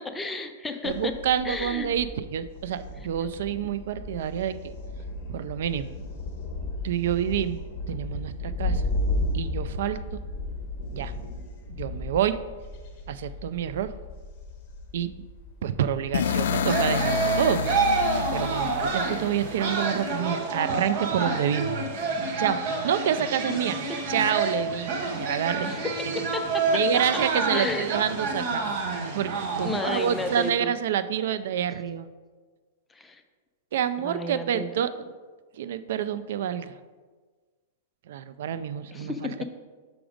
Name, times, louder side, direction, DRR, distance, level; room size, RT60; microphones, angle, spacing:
voice 1, 0.0-1.1 1.4-1.9 3.0-3.1 25.6-25.9 26.1-26.7 27.5-27.9 29.6-30.7 32.9-33.2 34.0-34.7 38.9-39.4, left 3 dB, 10° left, 6 dB, 0.4 m, -32 dB
voice 2, 0.8-4.6 5.3-5.9 6.8-7.6 7.9-8.8 9.3-10.2 10.9-11.1 11.7-12.4 13.1-13.9 14.9-15.1 15.6-17.7 18.3-21.7 22.4-23.8 24.1-25.7 26.7-28.6 29.1-32.1 33.7-34.9 35.6-36.7 38.1-39.4, right 9 dB, 65° right, 13 dB, 0.3 m, -28 dB
Thunder, 0.9-18.9, left 2 dB, 35° left, 1.2 m, -35 dB
sound 1, 16.1-20.0, left 6 dB, 75° left, 0.3 m, -29 dB
sound 2, 16.6-30.5, right 3 dB, 40° right, 0.9 m, -28 dB
6.0 x 5.0 x 5.0 m, 1.4 s
supercardioid pair, 160°, 0 cm